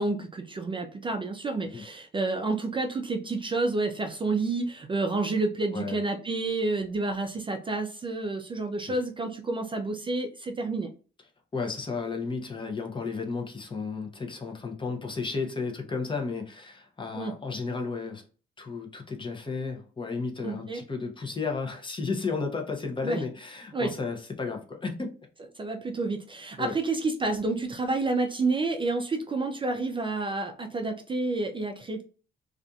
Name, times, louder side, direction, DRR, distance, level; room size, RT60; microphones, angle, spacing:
voice 1, 0.0-10.9 17.1-17.3 20.4-20.8 23.0-23.2 23.7-23.9 25.6-32.0, right 3 dB, 25° right, 0.4 m, -29 dB
voice 2, 11.5-18.2 18.6-25.1 26.6-26.7, left 4 dB, 25° left, 0.7 m, -33 dB
2.6 x 2.4 x 2.3 m
cardioid pair, 90°, 20 cm